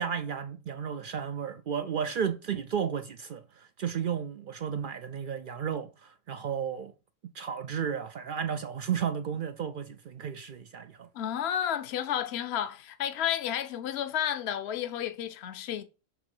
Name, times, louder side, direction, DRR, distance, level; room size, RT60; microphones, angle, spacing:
voice 1, 0.0-6.9 7.3-11.1, right 7 dB, 65° right, 0.5 m, -33 dB
voice 2, 11.1-15.8, left 10 dB, 60° left, 0.9 m, -31 dB
6.7 x 3.6 x 4.8 m
omnidirectional pair, 1.4 m